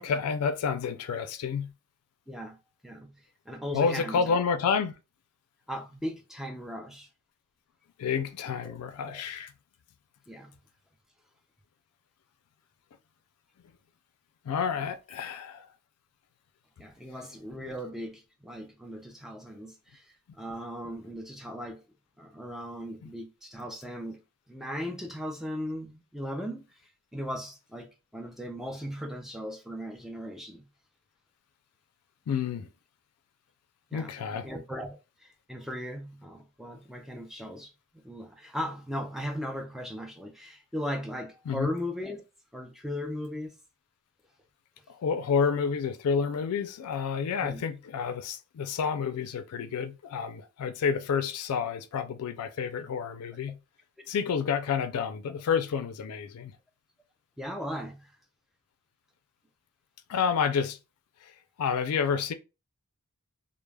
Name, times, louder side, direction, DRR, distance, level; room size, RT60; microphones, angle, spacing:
voice 1, 0.0-1.7 3.7-4.9 8.0-9.5 14.4-15.7 23.0-23.1 32.3-32.7 33.9-34.5 41.5-41.7 44.9-53.6 54.1-56.5 60.1-60.8 61.2-61.3 61.6-62.3, left 6 dB, 85° left, 0.4 m, -29 dB
voice 2, 2.3-2.6 2.8-4.4 5.7-7.1 8.6-9.2 10.3-10.6 16.8-21.8 22.2-24.2 24.5-26.8 27.1-30.7 33.9-34.2 34.4-42.2 42.5-43.5 47.4-47.6 54.0-54.1 57.4-58.1, equal, ahead, 0.3 m, -38 dB
2.2 x 2.0 x 3.2 m
head